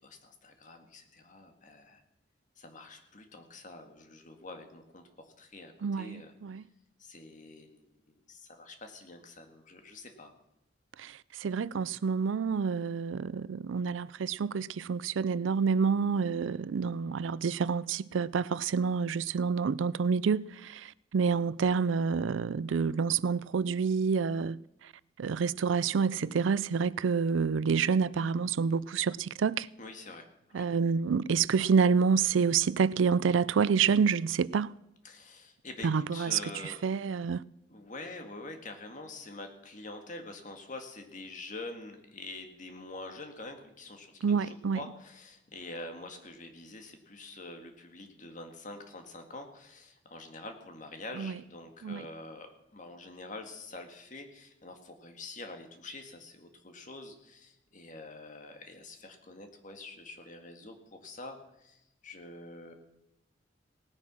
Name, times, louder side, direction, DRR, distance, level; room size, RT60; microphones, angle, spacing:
voice 1, 0.0-2.0 2.6-5.0 5.4-6.3 7.0-10.3 29.8-30.7 35.0-36.8 37.7-62.8, left 2 dB, 40° left, 1.9 m, -46 dB
voice 2, 5.8-6.6 11.0-24.6 25.2-29.7 30.5-34.7 35.8-36.4 36.8-37.4 44.2-44.8 51.2-51.3 51.8-52.0, right 5 dB, 85° right, 0.4 m, -28 dB
18.0 x 9.8 x 6.2 m
head